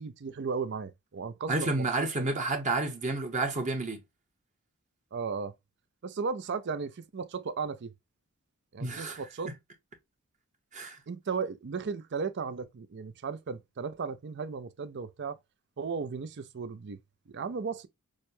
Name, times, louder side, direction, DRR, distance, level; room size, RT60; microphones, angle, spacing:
voice 1, 0.0-2.3 5.1-5.5 6.0-7.9 8.7-9.5 11.1-15.4 15.8-17.0 17.3-17.9, right 5 dB, 50° right, 0.5 m, -35 dB
voice 2, 1.5-4.0 8.8-9.2 10.7-11.0, right 2 dB, 35° right, 1.0 m, -30 dB
6.2 x 2.2 x 2.6 m
head